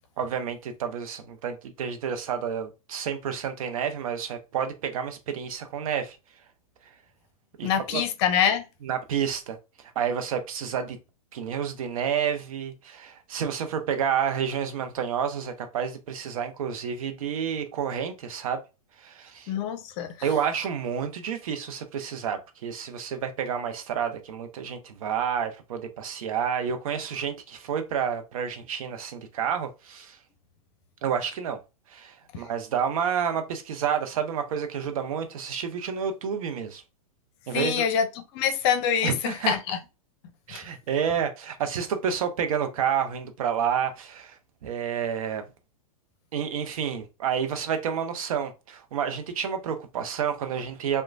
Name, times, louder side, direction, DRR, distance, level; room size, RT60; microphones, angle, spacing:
voice 1, 0.2-6.2 7.6-8.0 8.8-9.6 10.0-11.0 11.3-18.6 19.0-19.5 20.2-30.2 31.0-31.6 31.9-36.8 37.5-37.8 39.0-39.6 40.5-45.4 46.3-51.0, right 7 dB, 70° right, 0.6 m, -29 dB
voice 2, 7.6-8.7 19.5-20.3 32.3-32.4 37.5-38.1 38.3-39.8 40.5-40.6, left 8 dB, 45° left, 0.6 m, -25 dB
2.9 x 2.2 x 2.5 m
hypercardioid pair, 120°, 19 cm